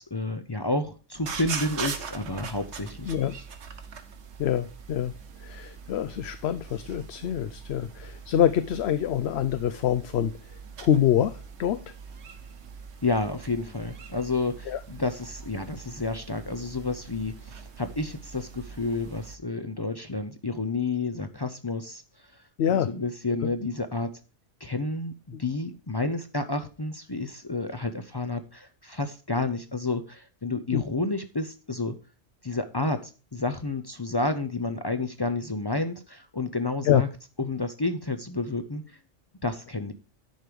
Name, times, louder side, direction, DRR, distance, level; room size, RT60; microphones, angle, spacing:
voice 1, 0.0-3.4 13.0-22.4 22.7-24.1 24.6-31.9 32.4-37.1 37.4-38.8 39.4-39.9, left 3 dB, 30° left, 8 dB, 0.4 m, -30 dB
sound 1, 1.1-19.4, right 6 dB, 70° right, 1.2 m, -42 dB
voice 2, 3.1-3.4 4.4-5.1 5.4-10.3 10.8-11.8 14.7-14.8 22.6-22.9 30.7-30.8 36.9-37.0, left 10 dB, 65° left, 12 dB, 0.8 m, -25 dB
10.0 x 4.7 x 5.1 m, 0.36 s
omnidirectional pair, 1.2 m